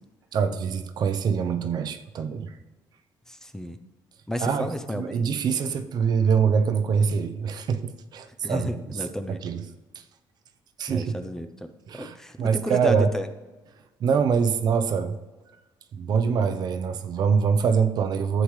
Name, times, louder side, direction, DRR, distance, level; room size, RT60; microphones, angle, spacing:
voice 1, 0.3-2.5 4.4-9.7 9.9-10.0 10.8-11.2 11.9-13.1 14.0-15.1 15.9-18.4, right 6 dB, 60° right, 8 dB, 0.7 m, -24 dB
voice 2, 3.3-3.8 4.3-5.2 8.4-9.4 10.9-13.3, equal, 5° left, 8 dB, 0.6 m, -32 dB
11.5 x 8.0 x 3.2 m, 1.2 s
cardioid pair, 110°, 8 cm